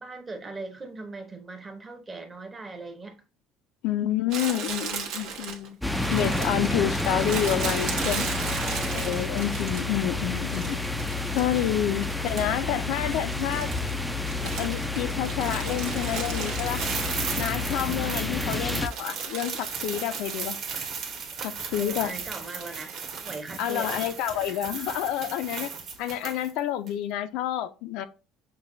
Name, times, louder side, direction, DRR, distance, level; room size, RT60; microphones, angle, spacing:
voice 1, 0.0-3.2 8.4-9.1 18.4-18.7 21.8-23.0 23.2-23.9, right 3 dB, 20° right, 0.8 m, -39 dB
voice 2, 3.8-5.8 6.1-8.3 8.9-10.8 11.3-13.7 14.6-16.8 17.4-20.6 21.4-22.1 23.6-25.7 26.0-28.0, left 11 dB, 70° left, 0.4 m, -29 dB
Crumpling crinkling, 4.3-10.0 10.5-12.7 12.9-18.0 18.4-20.8 21.1-21.2 22.0-23.4, right 6 dB, 70° right, 1.1 m, -37 dB
sound 1, 5.8-18.9, left 2 dB, ahead, 0.3 m, -29 dB
sound 2, 16.6-26.6 26.9-27.0, right 5 dB, 45° right, 1.3 m, -36 dB
6.6 x 2.2 x 2.6 m
cardioid pair, 150°, 0 cm